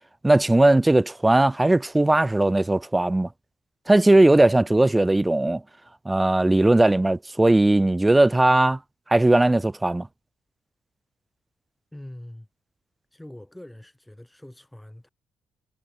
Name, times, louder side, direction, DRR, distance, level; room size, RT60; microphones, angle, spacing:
voice 1, 0.2-3.3 3.9-5.6 6.1-8.8 9.1-10.1, right 2 dB, 15° right, 0.4 m, -18 dB
voice 2, 11.9-12.5 13.1-15.1, left 1 dB, 5° left, 5.2 m, -43 dB
cardioid pair, 90°, 0 cm